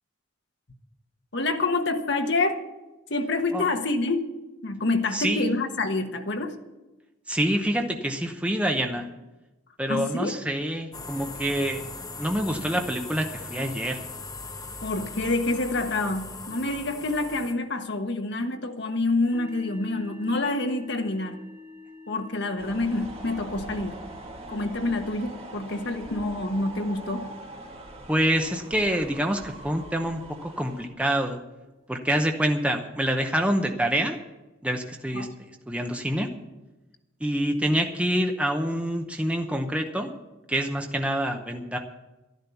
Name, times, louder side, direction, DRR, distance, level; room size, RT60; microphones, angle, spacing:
voice 1, 1.3-2.6 3.1-4.3 4.6-6.5 9.9-10.4 14.8-21.4 22.1-24.0 24.5-27.3 35.1-35.3, left 2 dB, 55° left, 5 dB, 1.2 m, -27 dB
voice 2, 5.1-5.6 7.3-9.1 9.8-11.8 12.2-14.0 28.1-31.4 31.9-34.2 34.6-35.3 35.7-36.3 37.2-40.1 40.5-41.8, right 1 dB, 5° right, 4 dB, 0.8 m, -26 dB
sound 1, 10.9-17.5, left 3 dB, 20° left, 0.9 m, -39 dB
sound 2, 19.2-30.8, left 3 dB, 55° right, 4.8 m, -49 dB
sound 3, 22.6-30.9, right 1 dB, 30° right, 1.7 m, -42 dB
12.0 x 10.5 x 7.0 m, 1.1 s
head